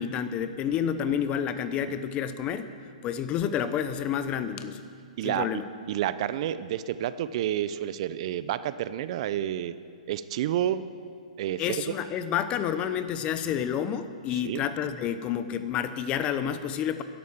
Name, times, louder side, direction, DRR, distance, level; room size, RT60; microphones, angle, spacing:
voice 1, 0.0-2.7 3.0-4.8 5.2-5.6 11.6-17.0, left 9 dB, 25° left, 11 dB, 0.8 m, -29 dB
voice 2, 5.9-9.7 10.1-10.8 11.4-11.8 14.3-14.6, right 11 dB, 50° right, 14 dB, 0.6 m, -29 dB
12.0 x 11.0 x 7.4 m, 2.2 s
hypercardioid pair, 140°, 4 cm